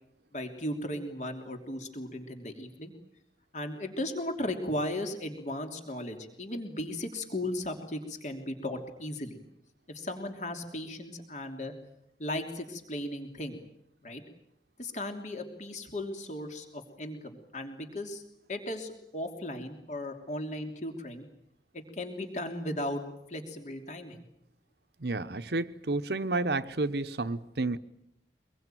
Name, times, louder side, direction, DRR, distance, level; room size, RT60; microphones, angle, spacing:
voice 1, 0.3-2.9 3.5-9.4 9.9-11.7 12.2-13.6 14.0-14.2 14.8-18.2 18.5-21.2 21.7-23.0 23.3-24.2, left 1 dB, 40° left, 3.1 m, -36 dB
voice 2, 25.0-27.8, right 2 dB, 65° right, 1.0 m, -31 dB
25.0 x 22.0 x 9.2 m
head